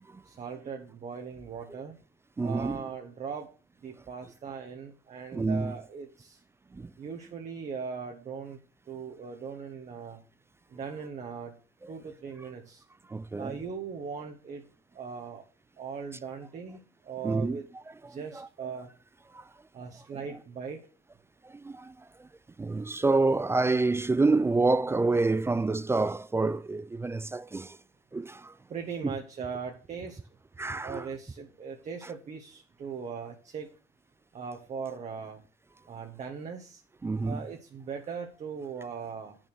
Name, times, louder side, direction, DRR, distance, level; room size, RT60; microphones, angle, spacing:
voice 1, 0.2-2.0 2.4-3.5 3.8-6.4 7.0-8.6 8.9-10.2 10.7-11.5 11.9-12.8 13.4-14.6 14.9-15.5 15.8-17.7 18.0-18.9 19.7-20.8 28.7-30.2 30.8-33.7 34.3-35.4 35.9-36.8 37.2-39.4, right 6 dB, 45° right, 1.4 m, -39 dB
voice 2, 2.4-2.9 5.3-5.7 6.7-6.9 11.8-11.9 13.1-13.6 17.2-17.6 18.1-18.5 19.3-19.5 20.3-20.4 21.4-22.3 22.6-27.8 28.1-28.5 30.6-31.1 37.0-37.4, right 3 dB, 15° right, 0.4 m, -28 dB
8.6 x 6.3 x 6.3 m
cardioid pair, 110°, 17 cm